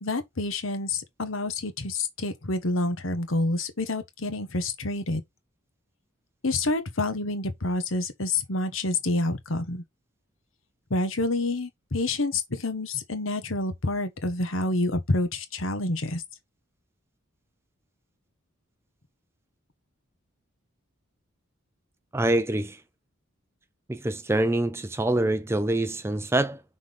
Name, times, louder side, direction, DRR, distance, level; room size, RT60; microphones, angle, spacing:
voice 1, 0.0-5.2 6.4-9.8 10.9-16.2, left 2 dB, 70° left, 1.3 m, -28 dB
voice 2, 22.1-22.8 23.9-26.6, right 1 dB, 10° right, 0.4 m, -25 dB
5.8 x 3.8 x 5.2 m
head